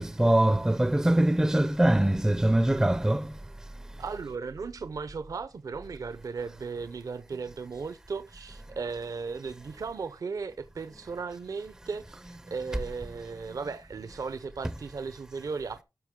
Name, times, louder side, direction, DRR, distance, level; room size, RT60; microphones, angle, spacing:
voice 1, 0.0-3.3, right 1 dB, 10° right, 0.5 m, -23 dB
voice 2, 4.0-15.8, right 5 dB, 55° right, 0.6 m, -36 dB
12.5 x 6.4 x 3.6 m
wide cardioid pair, 105°, 7 cm